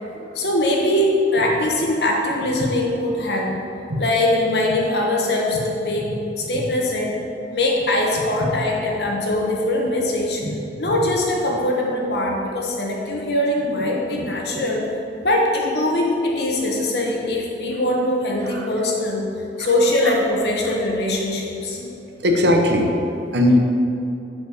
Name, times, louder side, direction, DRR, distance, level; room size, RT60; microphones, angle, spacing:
voice 1, 0.3-3.6 4.0-6.1 6.4-7.2 7.5-10.4 10.8-14.9 15.2-19.3 19.6-21.8, left 1 dB, 65° left, -1 dB, 1.3 m, -22 dB
voice 2, 22.2-22.9 23.3-23.6, left 1 dB, 70° right, 3 dB, 0.9 m, -18 dB
7.4 x 4.8 x 6.5 m, 2.8 s
head